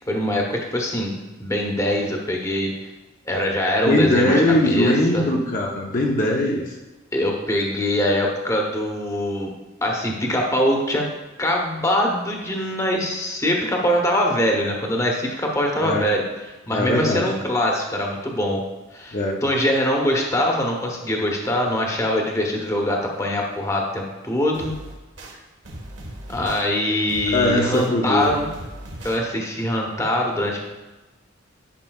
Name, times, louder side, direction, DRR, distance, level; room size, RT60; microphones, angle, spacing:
voice 1, 0.1-1.1 1.4-2.7 3.3-5.2 7.1-9.5 9.8-11.0 11.4-16.2 16.7-18.6 18.9-24.7 26.3-28.5 29.0-30.6, left 1 dB, 15° left, 1 dB, 1.0 m, -23 dB
voice 2, 3.9-6.7 15.8-16.1 16.7-17.3 19.1-19.4 27.3-28.3, left 1 dB, 45° left, -1 dB, 0.8 m, -20 dB
sound 1, 24.5-25.3 25.6-26.6 27.1-27.9 28.2-29.2, right 1 dB, 65° right, 1.4 m, -38 dB
11.0 x 5.6 x 2.4 m, 1.2 s
head